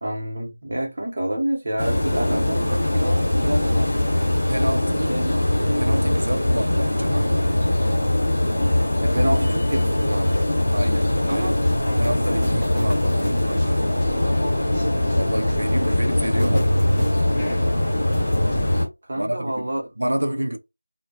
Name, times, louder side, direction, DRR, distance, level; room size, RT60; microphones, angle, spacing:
voice 1, 0.0-4.1 5.1-5.4 9.0-10.5 11.3-11.5 19.1-19.8, right 1 dB, 40° right, 0.8 m, -28 dB
sound 1, 1.8-18.9, left 1 dB, 30° left, 1.0 m, -21 dB
voice 2, 4.5-5.2 5.8-7.7 10.7-14.0 15.1-16.9 19.2-19.7 20.0-20.6, right 1 dB, 80° right, 0.4 m, -29 dB
sound 2, 10.6-18.8, left 1 dB, 5° left, 0.5 m, -39 dB
2.2 x 2.1 x 2.7 m
figure-of-eight pair, 175°, 0 cm